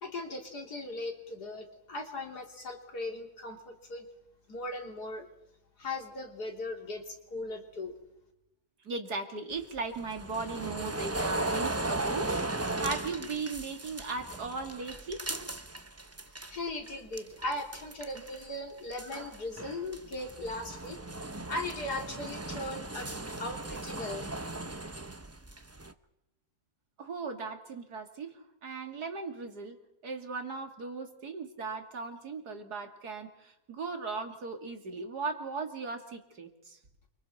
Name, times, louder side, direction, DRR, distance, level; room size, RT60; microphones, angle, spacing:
voice 1, 0.0-4.1 4.5-5.3 5.8-7.9 16.2-21.2 21.5-24.3, left 2 dB, 85° left, 2 dB, 3.9 m, -38 dB
voice 2, 8.8-15.2 27.0-29.8 30.0-36.8, right 4 dB, 85° right, 5 dB, 3.1 m, -38 dB
sound 1, 9.5-16.6 16.9-18.5 18.8-25.9, right 2 dB, 15° right, 0.6 m, -37 dB
28.5 x 25.0 x 4.4 m, 0.89 s
omnidirectional pair, 1.7 m